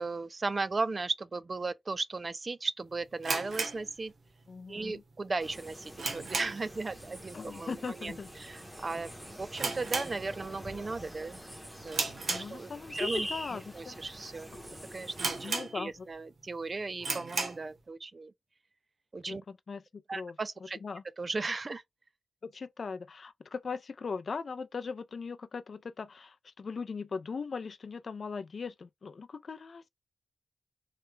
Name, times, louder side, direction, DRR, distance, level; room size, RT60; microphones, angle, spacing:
voice 1, 0.0-4.1 4.7-9.1 9.4-11.4 11.8-12.0 12.5-14.5 14.9-18.3 19.1-19.4 20.1-20.8 21.2-21.8, right 3 dB, 35° right, 0.3 m, -36 dB
sound 1, 3.2-4.6 4.8-4.9 5.5-6.8 7.1-7.4 7.7-7.8 8.5-8.7 9.0-9.1 9.5-10.7 11.0-11.3 11.9-13.0 13.6-13.7 14.3-14.4 14.6-14.7 15.2-16.1 16.5-16.6 17.0-17.7, right 4 dB, 70° right, 0.9 m, -35 dB
voice 2, 4.5-5.0 7.3-8.3 12.3-14.0 15.4-15.9 19.3-20.4 20.8-21.0 22.4-29.9, left 5 dB, 55° left, 0.4 m, -39 dB
sound 2, 5.4-15.5, equal, 10° right, 0.7 m, -44 dB
3.3 x 2.2 x 3.0 m
wide cardioid pair, 120°, 0 cm